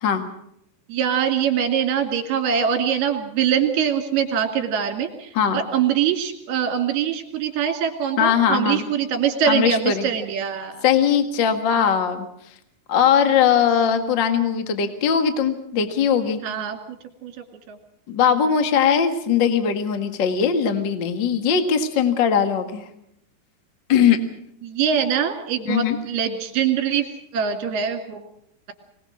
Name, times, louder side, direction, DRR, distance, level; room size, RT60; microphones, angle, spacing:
voice 1, 0.9-10.9 13.3-13.6 16.4-17.3 17.7-17.8 24.6-27.1 27.3-28.3, right 8 dB, 65° right, 5 dB, 4.0 m, -23 dB
voice 2, 8.2-8.8 9.5-10.1 10.8-12.3 12.9-16.4 18.1-22.8 23.9-24.2 25.7-26.0, left 7 dB, 70° left, 7 dB, 1.0 m, -20 dB
24.5 x 19.5 x 6.3 m, 0.75 s
omnidirectional pair, 5.1 m